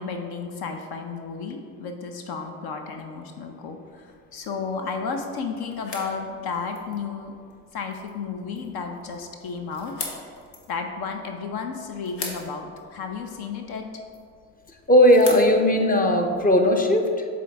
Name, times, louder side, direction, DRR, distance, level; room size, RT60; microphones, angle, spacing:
voice 1, 0.0-7.3 7.7-9.9 10.7-13.9, left 5 dB, 55° left, 4 dB, 0.7 m, -33 dB
sound 1, 3.8-16.7, left 3 dB, 85° left, 0.9 m, -43 dB
voice 2, 14.9-17.3, equal, 20° left, 4 dB, 0.6 m, -17 dB
7.4 x 3.8 x 3.4 m, 2.2 s
hypercardioid pair, 60°, 46 cm